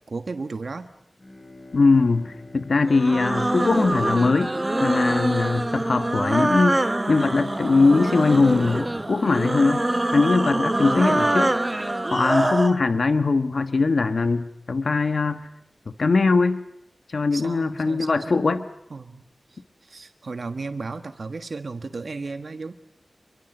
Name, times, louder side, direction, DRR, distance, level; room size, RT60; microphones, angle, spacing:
voice 1, 0.1-0.9 17.3-18.4 18.9-19.2 19.5-22.7, right 3 dB, 75° right, 9 dB, 1.4 m, -34 dB
Bowed string instrument, 1.0-5.7, left 2 dB, 40° left, 6.0 m, -47 dB
voice 2, 1.7-4.5 4.8-6.8 7.1-9.9 10.1-11.5 12.1-15.5 16.0-16.6 17.1-18.7, left 3 dB, 75° left, 10 dB, 1.2 m, -21 dB
sound 1, 2.9-12.8, right 1 dB, 30° right, 1.0 m, -24 dB
28.5 x 23.0 x 7.9 m, 0.79 s
wide cardioid pair, 60°, 0 cm